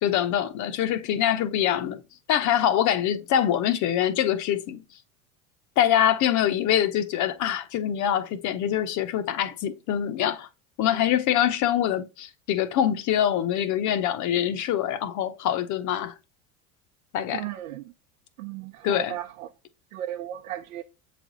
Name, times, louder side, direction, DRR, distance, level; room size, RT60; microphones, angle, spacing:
voice 1, 0.0-2.0 2.3-4.8 5.8-10.5 10.8-16.1 17.1-17.5 18.8-19.2, left 10 dB, 45° left, 0.7 m, -24 dB
voice 2, 17.3-17.8 18.4-19.2 19.9-20.8, right 13 dB, 75° right, 0.7 m, -35 dB
7.5 x 3.3 x 3.8 m
hypercardioid pair, 90°, 42 cm